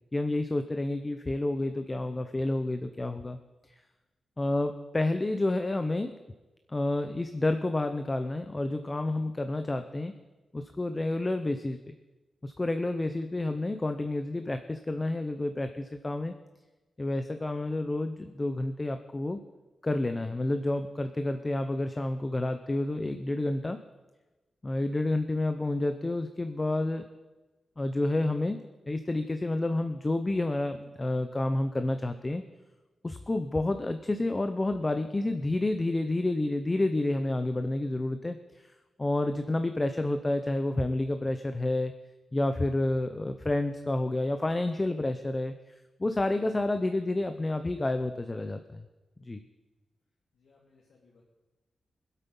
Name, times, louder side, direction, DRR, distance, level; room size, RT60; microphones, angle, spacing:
voice 1, 0.1-3.4 4.4-6.2 6.7-10.1 10.5-11.9 12.4-16.3 17.0-19.4 19.8-23.8 24.6-27.1 27.8-32.4 33.0-38.7 39.0-41.9 42.3-45.6 46.0-48.9 49.2-49.4, left 2 dB, 20° left, 8 dB, 0.6 m, -29 dB
voice 2, 50.3-51.2, left 4 dB, 75° left, -4 dB, 2.4 m, -63 dB
21.0 x 8.3 x 5.4 m, 1.2 s
wide cardioid pair, 140°, 0 cm